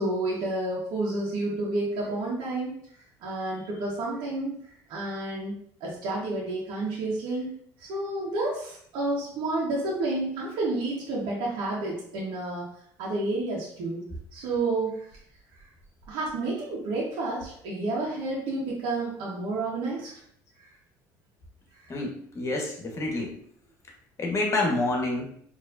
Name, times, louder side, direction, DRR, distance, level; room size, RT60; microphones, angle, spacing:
voice 1, 0.0-2.7 3.2-4.6 4.9-5.5 5.8-12.7 13.0-14.0 14.3-15.1 16.1-20.1 21.8-21.9, right 2 dB, 70° right, -5 dB, 1.4 m, -30 dB
voice 2, 21.9-23.3 24.2-25.2, left 2 dB, 40° left, 0 dB, 1.3 m, -28 dB
4.4 x 3.1 x 2.6 m, 0.63 s
supercardioid pair, 80°, 8 cm